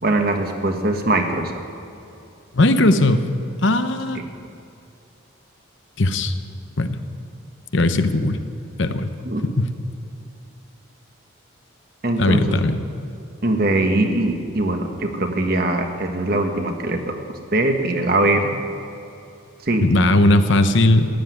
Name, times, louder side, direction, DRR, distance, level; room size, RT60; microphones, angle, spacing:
voice 1, 0.0-1.5 4.1-4.2 9.2-9.5 12.0-12.6 13.4-17.1 17.5-18.5 19.6-20.0, right 2 dB, 45° right, 4 dB, 1.5 m, -21 dB
voice 2, 2.5-3.3 3.6-4.2 6.0-6.3 6.8-7.0 7.7-8.4 8.8-9.1 9.6-9.7 12.2-12.8 19.8-21.1, left 1 dB, 60° left, 9 dB, 0.9 m, -18 dB
15.0 x 10.0 x 9.6 m, 2.7 s
head